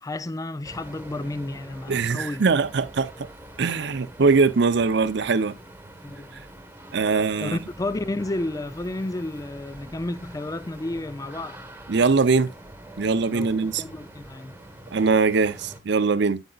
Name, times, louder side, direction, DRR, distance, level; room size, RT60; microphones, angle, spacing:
voice 1, 0.0-2.4 6.0-6.4 7.4-11.6 13.3-14.6, left 2 dB, 20° left, 0.4 m, -32 dB
sound 1, 0.6-15.8, right 1 dB, 10° right, 1.3 m, -44 dB
voice 2, 1.9-3.3 3.6-5.5 6.9-7.6 11.9-12.5 13.0-13.8 14.9-16.4, right 4 dB, 60° right, 0.6 m, -21 dB
9.0 x 7.8 x 2.3 m
head